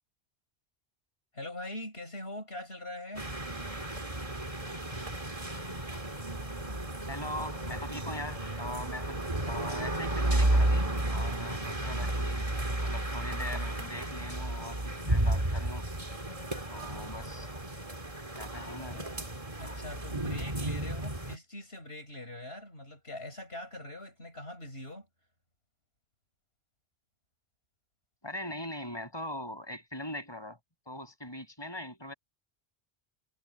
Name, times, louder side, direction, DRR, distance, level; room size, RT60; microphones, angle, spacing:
voice 1, 1.3-3.3 19.6-25.1, left 1 dB, 75° left, 7.2 m, -42 dB
sound 1, 3.1-21.4, right 1 dB, 30° right, 2.8 m, -32 dB
voice 2, 7.1-12.5 12.8-15.9 16.7-17.5 18.3-19.1 28.2-30.6 30.9-32.1, left 1 dB, 25° left, 7.2 m, -41 dB
omnidirectional pair, 1.1 m